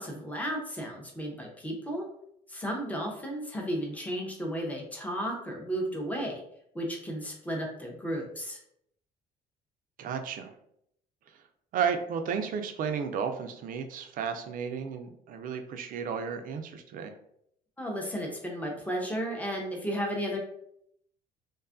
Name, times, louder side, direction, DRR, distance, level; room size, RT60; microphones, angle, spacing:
voice 1, 0.0-2.1 2.5-6.4 6.7-8.6 17.8-20.4, equal, 10° left, 0 dB, 0.6 m, -34 dB
voice 2, 10.0-10.5 11.7-17.1, right 7 dB, 55° right, 6 dB, 0.4 m, -33 dB
2.6 x 2.3 x 2.4 m, 0.72 s
cardioid pair, 110°, 17 cm